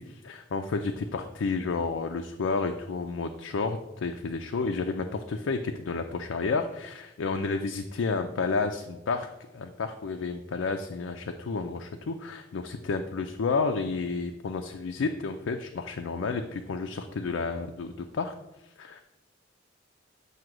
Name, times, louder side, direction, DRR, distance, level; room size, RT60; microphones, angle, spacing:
voice 1, 0.0-9.3 9.5-18.3 18.6-19.0, left 4 dB, 80° left, 5 dB, 0.4 m, -31 dB
7.5 x 2.8 x 6.0 m, 0.95 s
head